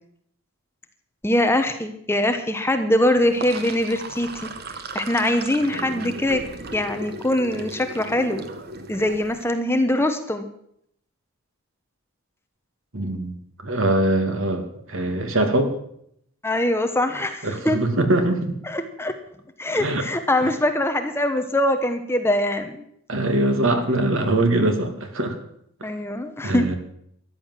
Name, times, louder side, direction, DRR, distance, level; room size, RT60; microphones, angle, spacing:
voice 1, 1.2-4.5 4.9-8.4 8.9-10.5 16.4-17.8 18.6-19.1 19.6-22.8 25.8-26.7, left 1 dB, 10° left, 7 dB, 1.0 m, -23 dB
Sink (filling or washing), 3.2-9.4, right 2 dB, 45° right, 1.3 m, -36 dB
voice 2, 12.9-13.3 13.6-15.7 17.4-18.6 19.8-20.0 20.4-20.5 23.1-25.4 26.4-26.7, right 1 dB, 60° right, 6 dB, 2.3 m, -22 dB
14.0 x 10.5 x 7.5 m, 0.71 s
head